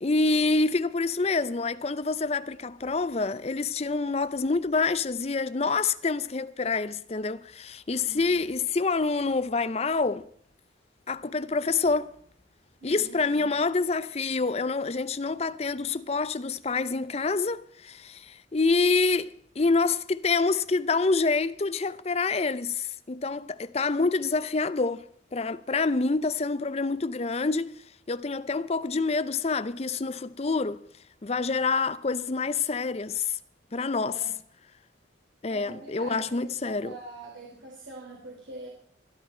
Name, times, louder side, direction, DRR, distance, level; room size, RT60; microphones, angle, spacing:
voice 1, 0.0-10.2 11.1-12.1 12.8-25.0 25.3-27.7 28.1-30.8 31.2-33.4 33.7-34.2 35.4-36.9, left 3 dB, 30° left, 0.5 m, -27 dB
voice 2, 7.9-8.5 12.8-13.5 34.1-34.3 35.5-38.7, right 2 dB, 70° right, 3.3 m, -44 dB
20.0 x 11.0 x 4.4 m
head